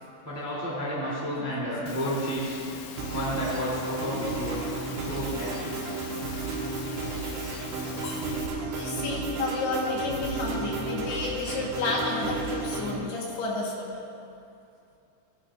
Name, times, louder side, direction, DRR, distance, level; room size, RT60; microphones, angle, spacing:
voice 1, 0.2-2.6 3.1-4.7 4.9-5.7, equal, 10° right, -7 dB, 1.1 m, -31 dB
Engine / Mechanisms, 1.9-8.5, left 7 dB, 85° left, 2.1 m, -42 dB
sound 1, 3.0-13.0, right 3 dB, 75° right, 3.3 m, -33 dB
voice 2, 8.6-13.9, left 3 dB, 70° left, -3 dB, 3.2 m, -31 dB
17.5 x 11.0 x 2.5 m, 2.6 s
omnidirectional pair, 5.1 m